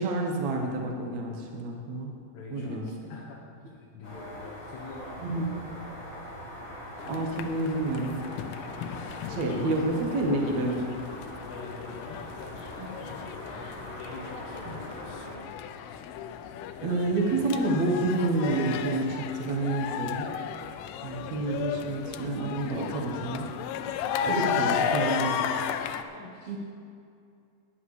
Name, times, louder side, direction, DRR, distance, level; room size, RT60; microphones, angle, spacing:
voice 1, 0.0-2.1 2.5-2.9 5.2-5.5 7.1-8.2 9.4-10.9 12.8-12.9 14.7-14.8 16.8-20.3 21.0-23.5 24.3-25.5 26.5-26.6, right 2 dB, 75° right, 0 dB, 1.6 m, -29 dB
voice 2, 2.3-3.4 3.6-5.9 9.3-10.0 11.5-13.4 13.9-15.4 24.1-25.7 26.1-26.6, left 3 dB, 75° left, -2 dB, 3.0 m, -44 dB
sound 1, 4.0-15.3, left 1 dB, 30° left, 3.7 m, -42 dB
sound 2, 7.0-26.0, left 8 dB, 90° left, 2.3 m, -34 dB
18.0 x 10.0 x 3.3 m, 2.4 s
omnidirectional pair, 5.2 m